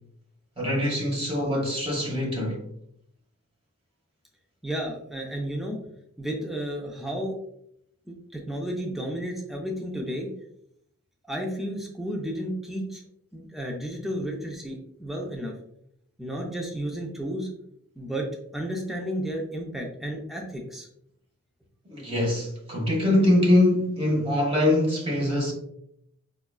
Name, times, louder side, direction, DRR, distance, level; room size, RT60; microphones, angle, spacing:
voice 1, 0.6-2.6 21.9-25.5, left 1 dB, 25° right, 0.9 m, -23 dB
voice 2, 4.6-5.8 6.2-7.4 8.1-10.3 11.3-13.0 13.3-15.5 16.2-17.5 18.0-20.9, equal, ahead, 0.4 m, -32 dB
4.7 x 2.3 x 2.3 m
head